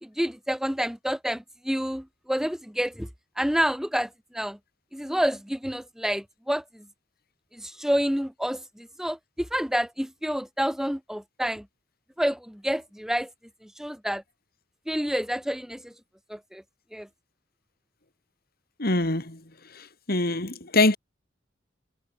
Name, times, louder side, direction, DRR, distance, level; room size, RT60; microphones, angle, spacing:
voice 1, 0.0-3.1 3.4-4.6 4.9-6.8 7.5-11.6 12.2-13.3 13.6-14.2 14.9-15.9 16.3-16.6 16.9-17.1, equal, 5° right, 1.2 m, -28 dB
voice 2, 18.8-19.4 20.1-21.0, left 2 dB, 50° left, 3.2 m, -23 dB
head